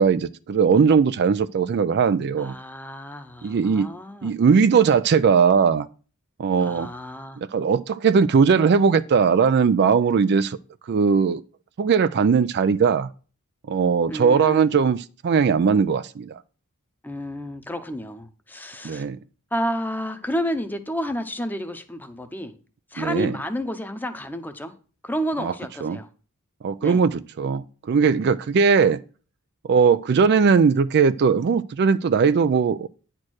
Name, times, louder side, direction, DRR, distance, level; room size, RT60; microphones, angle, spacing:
voice 1, 0.0-2.5 3.4-3.9 4.2-5.9 6.4-6.9 7.4-10.6 10.9-11.4 11.8-13.1 13.7-16.4 18.8-19.2 23.0-23.4 25.4-25.5 25.8-26.0 26.6-29.0 29.6-32.9, right 6 dB, 50° right, 0.4 m, -19 dB
voice 2, 2.4-4.3 6.6-7.4 14.1-14.7 17.0-19.1 19.5-22.5 22.9-24.7 25.0-26.1 26.8-27.0, equal, 10° left, 0.8 m, -30 dB
9.7 x 4.4 x 6.3 m
head